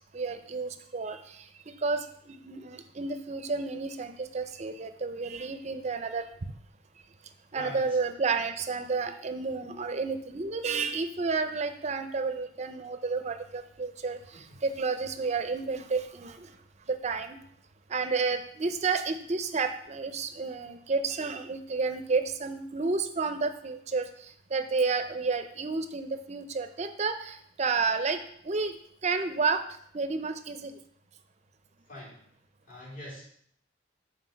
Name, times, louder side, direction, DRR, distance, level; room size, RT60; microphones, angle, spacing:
voice 1, 0.1-1.2 1.7-6.3 7.5-16.5 16.9-17.4 17.9-24.1 24.5-28.2 28.4-28.8 29.0-29.6 29.9-30.7, right 4 dB, 35° right, 8 dB, 0.5 m, -31 dB
voice 2, 7.5-8.0 14.3-14.6 31.9-32.2 32.6-33.2, left 1 dB, 45° left, -6 dB, 3.5 m, -44 dB
5.7 x 4.7 x 6.2 m, 0.65 s
head